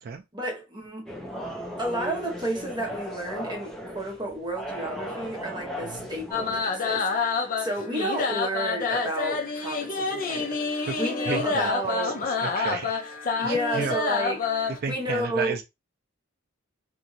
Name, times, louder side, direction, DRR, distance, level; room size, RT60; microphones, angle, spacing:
voice 1, 0.3-1.1 1.8-12.2 13.4-15.6, right 1 dB, 20° right, 1.0 m, -31 dB
sound 1, 1.1-6.6, equal, 5° left, 0.6 m, -37 dB
sound 2, 6.3-14.8, left 4 dB, 45° left, 0.6 m, -28 dB
voice 2, 11.3-12.1 12.4-13.0 13.4-13.9 14.8-15.6, right 5 dB, 50° right, 0.4 m, -32 dB
2.8 x 2.6 x 2.6 m
head